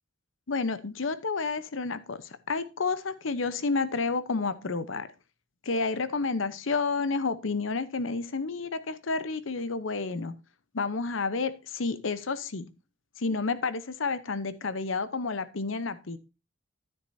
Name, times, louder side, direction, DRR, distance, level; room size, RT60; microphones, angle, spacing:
voice 1, 0.5-5.1 5.6-10.3 10.7-12.7 13.2-16.2, left 4 dB, 80° left, 0.8 m, -30 dB
10.0 x 9.6 x 2.7 m
head